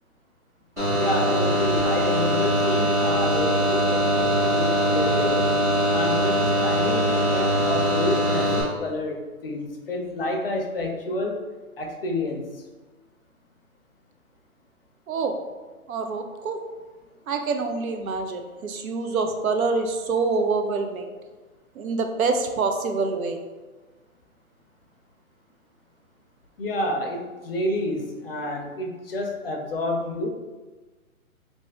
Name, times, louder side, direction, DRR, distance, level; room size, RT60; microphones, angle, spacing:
sound 1, 0.8-8.6, equal, 5° right, 0.8 m, -22 dB
voice 1, 1.0-5.5 5.9-11.4 11.8-12.6 26.6-30.3, left 1 dB, 45° left, 2 dB, 0.5 m, -29 dB
voice 2, 15.9-16.6 17.3-21.1 21.8-23.4, right 4 dB, 75° right, 6 dB, 0.7 m, -26 dB
3.3 x 2.6 x 3.4 m, 1.3 s
hypercardioid pair, 155°, 43 cm